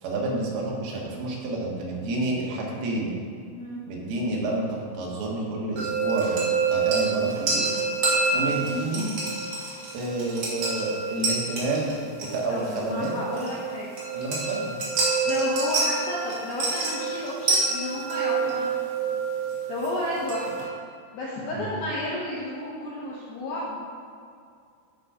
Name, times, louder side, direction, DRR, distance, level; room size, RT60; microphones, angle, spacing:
voice 1, 0.0-3.2 3.9-7.7 8.1-9.1 9.9-13.1 14.1-14.7 21.5-21.7, right 2 dB, 75° right, -3 dB, 4.0 m, -29 dB
voice 2, 3.5-3.8 12.5-14.0 15.2-18.7 19.7-20.6 21.1-23.8, left 1 dB, 75° left, -6 dB, 2.2 m, -32 dB
sound 1, 5.8-20.6, right 4 dB, 45° right, 2.5 m, -27 dB
10.5 x 6.0 x 5.1 m, 2.3 s
omnidirectional pair, 5.8 m